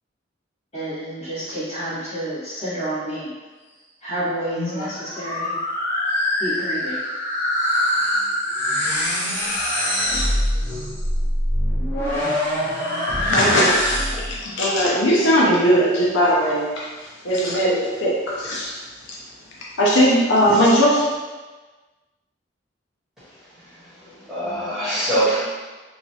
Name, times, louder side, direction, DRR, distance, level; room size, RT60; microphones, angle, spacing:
voice 1, 0.7-3.3 4.0-5.5 6.4-7.0, right 1 dB, 35° left, -11 dB, 1.4 m, -29 dB
sound 1, 4.3-14.4, left 1 dB, 15° left, 0.7 m, -23 dB
voice 2, 13.3-13.8 14.1-18.8 19.8-21.1, equal, 90° left, -4 dB, 0.6 m, -19 dB
voice 3, 23.2-25.5, right 1 dB, ahead, -13 dB, 1.2 m, -25 dB
3.0 x 2.4 x 2.7 m, 1.3 s
head